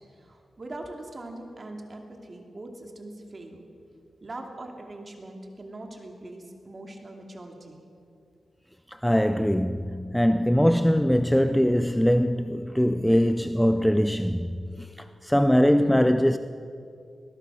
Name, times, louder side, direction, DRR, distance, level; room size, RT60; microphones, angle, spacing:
voice 1, 0.1-3.6 4.2-7.8, right 2 dB, 35° right, 2.6 m, -41 dB
voice 2, 8.9-16.4, equal, 5° left, 0.5 m, -22 dB
21.5 x 20.5 x 6.3 m
wide cardioid pair, 115°, 0 cm